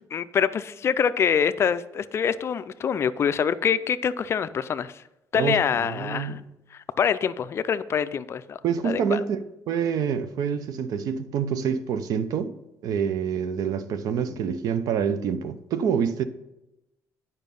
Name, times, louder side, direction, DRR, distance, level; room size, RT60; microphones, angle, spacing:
voice 1, 0.1-4.9 5.3-6.4 7.0-9.2, left 7 dB, 40° left, 0.4 m, -25 dB
voice 2, 5.3-6.4 8.6-12.5 12.8-16.2, right 7 dB, 70° right, 0.6 m, -27 dB
9.3 x 5.5 x 5.3 m
cardioid pair, 130°, 7 cm